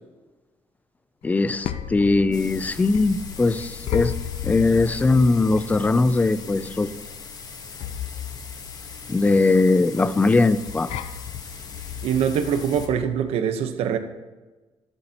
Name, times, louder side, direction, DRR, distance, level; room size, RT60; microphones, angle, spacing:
sound 1, 1.2-13.1, left 10 dB, 85° left, 0.6 m, -35 dB
voice 1, 1.2-4.1 4.4-6.9 9.1-10.9, left 3 dB, 15° left, 14 dB, 0.4 m, -20 dB
sound 2, 2.3-12.9, left 5 dB, 40° left, 1.2 m, -41 dB
voice 2, 12.0-14.0, right 8 dB, 85° right, 8 dB, 1.0 m, -23 dB
13.5 x 12.5 x 2.9 m, 1.2 s
cardioid pair, 145°, 10 cm